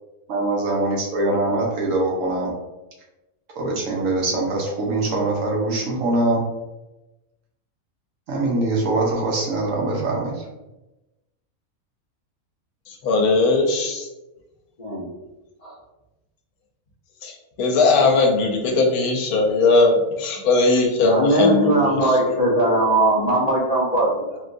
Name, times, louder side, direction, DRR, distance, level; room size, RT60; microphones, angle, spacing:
voice 1, 0.3-2.5 3.6-6.4 8.3-10.4, right 2 dB, 70° right, -2 dB, 1.1 m, -23 dB
voice 2, 12.9-14.1 17.2-22.5, left 3 dB, 85° left, 2 dB, 1.1 m, -19 dB
voice 3, 21.1-24.4, right 1 dB, 55° left, -6 dB, 0.4 m, -19 dB
3.7 x 2.3 x 2.5 m, 1.0 s
omnidirectional pair, 1.5 m